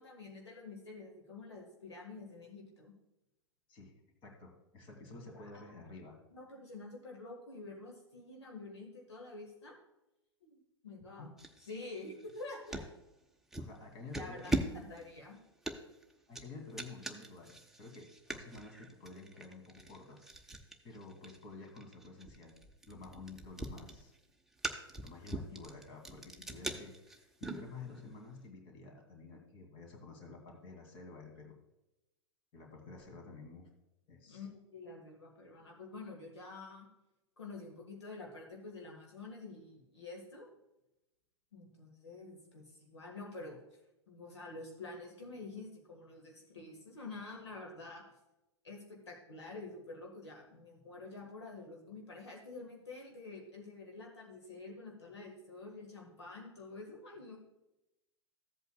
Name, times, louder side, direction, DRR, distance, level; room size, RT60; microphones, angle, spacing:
voice 1, 0.0-2.9 5.3-5.6 6.3-9.8 10.4-12.9 14.2-15.4 34.3-36.9 37.4-40.5 41.5-43.6 44.1-48.1 48.6-57.4, left 3 dB, 75° left, 0 dB, 1.5 m, -48 dB
voice 2, 4.2-6.2 11.2-11.3 13.6-14.6 16.3-20.6 20.8-22.5 22.9-24.1 25.0-31.6 32.5-33.7 34.1-34.4, left 3 dB, 35° left, 2 dB, 2.4 m, -51 dB
sound 1, 11.4-12.9 13.5-13.8 14.1-28.1, right 2 dB, 5° right, 0.8 m, -42 dB
14.5 x 8.1 x 2.3 m, 0.94 s
figure-of-eight pair, 95°, 14 cm